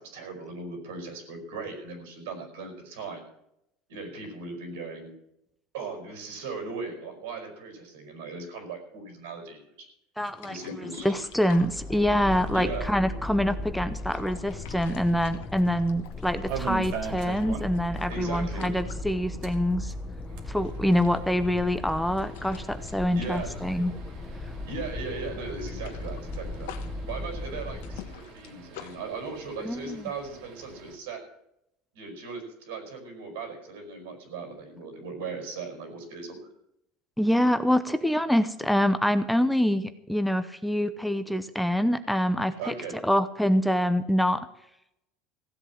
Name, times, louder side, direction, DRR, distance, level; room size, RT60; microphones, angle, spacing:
voice 1, 0.0-3.2 3.9-5.2 5.7-9.6 10.5-11.1 12.5-12.9 18.1-18.7 23.1-23.6 24.6-26.7 27.1-31.2 31.9-36.5 42.6-43.0, right 4 dB, 90° right, 5 dB, 5.4 m, -38 dB
voice 2, 10.2-19.9 20.5-23.9 29.6-30.0 37.2-42.7 43.0-44.5, equal, ahead, 10 dB, 0.7 m, -25 dB
sound 1, 10.3-13.3 13.8-16.6 16.9-19.8 20.1-20.3 20.6-24.4 24.7-24.9 25.2-29.0, left 11 dB, 85° left, 1.3 m, -48 dB
sound 2, 11.0-28.3, left 2 dB, 20° left, 1.1 m, -37 dB
sound 3, 16.0-18.0 18.3-18.4 18.7-18.8 19.3-31.0, right 7 dB, 60° right, 2.4 m, -42 dB
16.0 x 8.1 x 7.4 m, 0.80 s
supercardioid pair, 135°, 0 cm